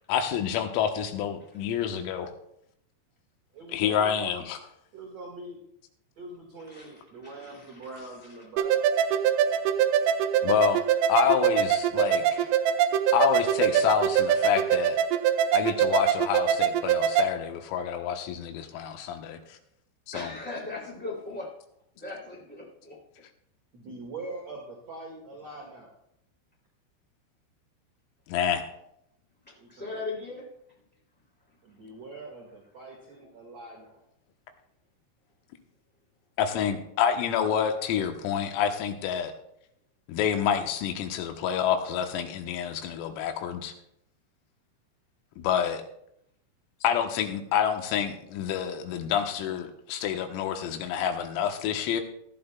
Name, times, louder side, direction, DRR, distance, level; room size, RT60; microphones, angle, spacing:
voice 1, 0.1-2.3 3.7-4.6 10.4-12.4 13.1-15.0 15.5-19.6 20.1-20.3 28.3-28.6 36.4-39.3 40.1-43.7 45.4-45.8 46.8-52.0, left 8 dB, 85° left, 6 dB, 3.7 m, -28 dB
voice 2, 3.5-4.4 4.9-5.6 6.2-8.8 23.7-25.9 29.6-30.0 31.6-34.0, right 2 dB, 65° right, -1 dB, 1.7 m, -43 dB
voice 3, 6.7-7.9 10.3-10.4 12.3-12.5 20.1-21.5 21.9-23.0 29.4-30.4, left 3 dB, 15° left, -4 dB, 0.4 m, -39 dB
sound 1, 8.6-17.3, right 9 dB, 85° right, 3.1 m, -24 dB
17.5 x 12.0 x 2.3 m, 0.76 s
omnidirectional pair, 5.9 m